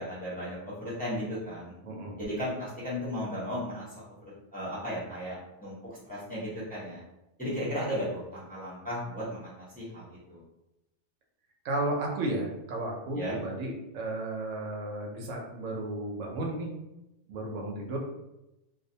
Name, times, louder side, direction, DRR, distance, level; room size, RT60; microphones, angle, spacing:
voice 1, 0.0-1.7 2.2-4.0 4.5-5.7 6.1-7.0 7.4-10.4 13.1-13.4, equal, 10° left, -9 dB, 0.7 m, -35 dB
voice 2, 1.8-2.1 11.6-16.7 17.3-18.0, right 2 dB, 85° right, -1 dB, 1.0 m, -33 dB
2.4 x 2.0 x 2.6 m, 0.92 s
omnidirectional pair, 1.3 m